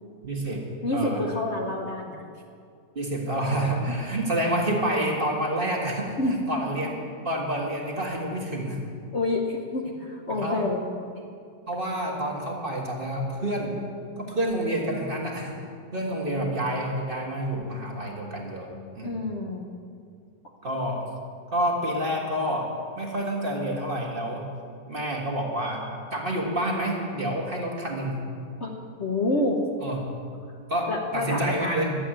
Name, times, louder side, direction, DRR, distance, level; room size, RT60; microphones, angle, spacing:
voice 1, 0.2-0.6 0.9-1.2 2.9-6.1 6.5-7.0 7.2-8.8 10.4-10.6 11.7-13.7 14.2-15.6 15.9-18.7 19.0-19.2 20.6-21.1 21.5-22.7 23.0-24.5 24.9-28.2 29.8-30.1 30.7-32.0, right 1 dB, 30° right, -1 dB, 1.7 m, -28 dB
voice 2, 0.8-2.2 6.2-6.3 9.1-10.8 19.0-19.6 28.6-28.7 29.0-29.6 30.9-31.7, left 2 dB, 45° left, 0 dB, 1.1 m, -28 dB
12.0 x 7.9 x 8.9 m, 2.3 s
omnidirectional pair, 1.9 m